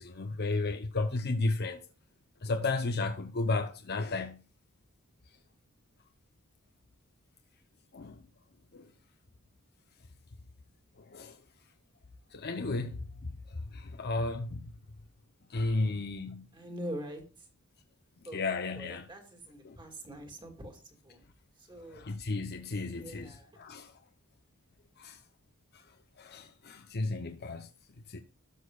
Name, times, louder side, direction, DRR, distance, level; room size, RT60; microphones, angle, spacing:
voice 1, 0.0-1.8 2.4-4.4 7.9-8.2 8.7-8.9 11.0-11.4 12.3-14.7 15.5-16.5 18.3-19.1 19.6-19.8 21.9-23.9 25.0-25.2 25.7-25.8 26.2-27.7 28.1-28.2, left 3 dB, 50° left, 0.8 m, -33 dB
voice 2, 15.6-16.1 16.5-17.2 18.2-18.5 18.7-21.3 21.6-22.1 23.0-23.6, right 1 dB, 20° right, 2.2 m, -44 dB
13.0 x 6.6 x 2.4 m
head